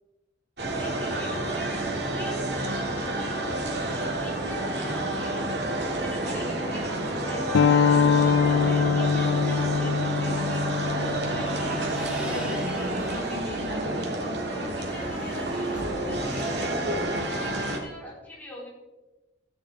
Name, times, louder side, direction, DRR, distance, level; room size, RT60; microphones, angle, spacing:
sound 1, 0.6-17.8, right 1 dB, 65° right, 2.1 m, -29 dB
voice 1, 0.7-5.5 5.8-10.6 10.9-14.1 14.5-18.7, equal, 10° left, -5 dB, 4.0 m, -43 dB
sound 2, 7.5-12.7, left 6 dB, 80° left, 0.4 m, -24 dB
sound 3, 11.3-13.5 14.0-16.8, right 1 dB, 5° right, 2.3 m, -44 dB
14.0 x 9.9 x 3.4 m, 1.1 s
head